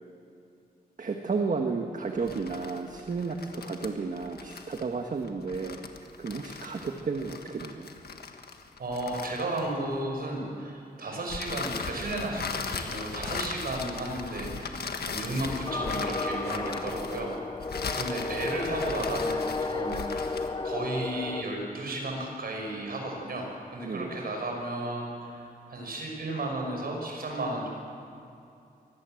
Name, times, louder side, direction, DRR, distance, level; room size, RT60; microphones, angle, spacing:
voice 1, 1.0-5.8 6.2-7.9 23.8-24.2, right 4 dB, 55° right, 3 dB, 1.5 m, -32 dB
sound 1, 2.2-10.0 11.3-20.6, left 5 dB, 80° left, 1.6 m, -38 dB
voice 2, 8.8-17.3 17.7-27.7, right 2 dB, 70° right, 1 dB, 6.0 m, -34 dB
sound 2, 15.7-21.4, left 3 dB, 30° left, 0.7 m, -33 dB
24.0 x 18.5 x 7.8 m, 2.6 s
wide cardioid pair, 120°, 16 cm